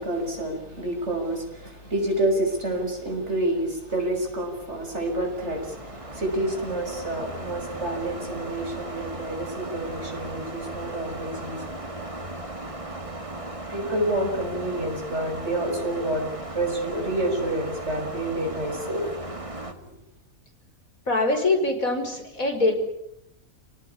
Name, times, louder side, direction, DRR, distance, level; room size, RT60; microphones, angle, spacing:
voice 1, 0.0-11.6 13.7-16.3 16.5-19.1 19.9-20.0, right 1 dB, 55° right, 3 dB, 6.7 m, -28 dB
sound 1, 4.7-19.7, right 1 dB, 25° right, 2.5 m, -37 dB
voice 2, 21.1-22.7, left 2 dB, 85° left, 4 dB, 5.7 m, -23 dB
30.0 x 18.5 x 9.9 m, 0.78 s
omnidirectional pair, 1.4 m